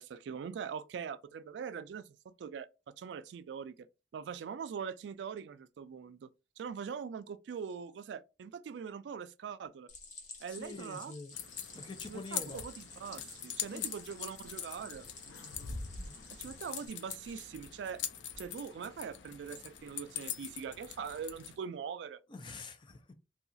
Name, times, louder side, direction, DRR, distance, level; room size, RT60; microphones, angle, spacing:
voice 1, 0.0-3.9 4.1-6.3 6.6-9.9 10.4-11.1 12.1-15.1 16.3-18.0 18.4-22.2, right 6 dB, 85° right, 0.3 m, -42 dB
Stream, 9.9-16.9, left 4 dB, 45° left, 0.8 m, -51 dB
voice 2, 10.5-11.3 11.7-12.6 13.7-13.9 16.0-16.2 22.3-23.1, left 3 dB, 25° left, 0.4 m, -46 dB
sound 1, 11.3-21.6, left 8 dB, 90° left, 0.4 m, -43 dB
2.8 x 2.3 x 2.6 m
head